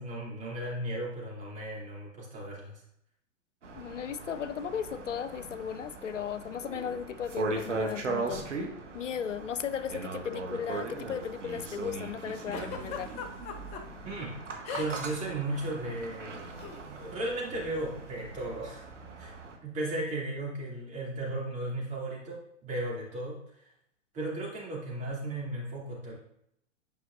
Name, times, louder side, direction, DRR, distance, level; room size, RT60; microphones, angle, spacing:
voice 1, 0.0-2.8 14.0-14.4 14.7-16.4 16.8-18.8 19.2-19.3 19.6-23.7 24.1-26.1, right 1 dB, 20° right, -5 dB, 2.6 m, -35 dB
sound 1, 3.6-19.6, right 3 dB, 75° right, 1.2 m, -39 dB
voice 2, 3.7-8.5 8.9-13.1, left 8 dB, 80° left, 12 dB, 0.5 m, -36 dB
Giggle, 12.5-13.8 14.6-15.2 15.4-15.7 16.6-16.8, left 7 dB, 20° left, 0.5 m, -38 dB
8.5 x 5.3 x 2.6 m, 0.75 s
figure-of-eight pair, 110°, 36 cm